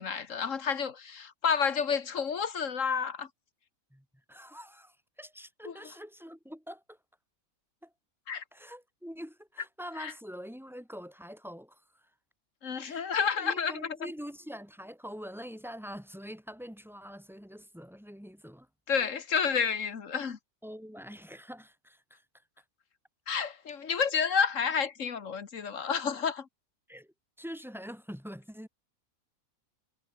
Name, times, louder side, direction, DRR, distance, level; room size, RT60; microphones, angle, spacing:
voice 1, 0.0-3.3 5.7-5.8 8.3-8.4 10.0-10.1 12.6-14.0 18.9-20.4 23.3-26.5, left 6 dB, 60° left, 1.9 m, -30 dB
voice 2, 3.9-7.0 7.8-7.9 8.5-12.1 12.8-13.0 13.4-18.7 20.6-22.2 26.9-28.7, equal, ahead, 3.8 m, -45 dB
omnidirectional pair, 1.5 m